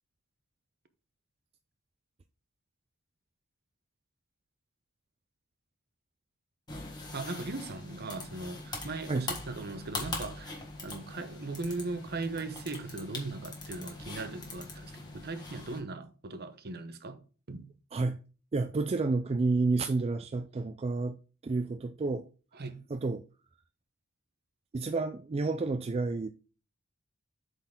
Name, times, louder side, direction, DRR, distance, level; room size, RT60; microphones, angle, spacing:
sound 1, 6.7-15.8, left 3 dB, 20° left, 1.5 m, -42 dB
voice 1, 7.1-17.7 22.5-22.9, right 3 dB, 50° right, 0.8 m, -39 dB
voice 2, 18.5-21.2 21.4-22.3 22.9-23.2 24.7-26.3, right 3 dB, 30° right, 0.3 m, -30 dB
8.0 x 4.1 x 3.7 m
head